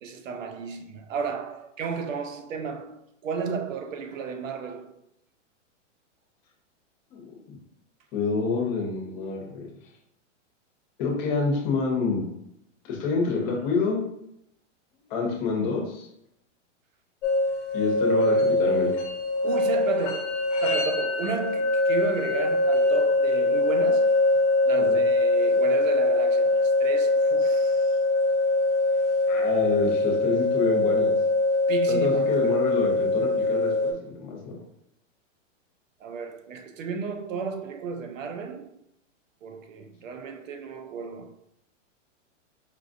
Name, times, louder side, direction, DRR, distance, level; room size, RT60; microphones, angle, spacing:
voice 1, 0.0-4.9 19.4-24.1 24.7-28.0 31.7-32.6 36.0-38.8 39.4-41.3, right 5 dB, 90° right, 0.7 m, -33 dB
voice 2, 8.1-9.7 11.0-12.2 12.8-14.0 15.1-16.1 17.7-18.9 24.8-25.0 29.3-31.2 31.9-34.6, left 4 dB, 35° left, 1.0 m, -27 dB
sound 1, 17.2-33.9, left 2 dB, 65° left, 0.8 m, -23 dB
4.7 x 2.4 x 2.5 m
hypercardioid pair, 155°, 38 cm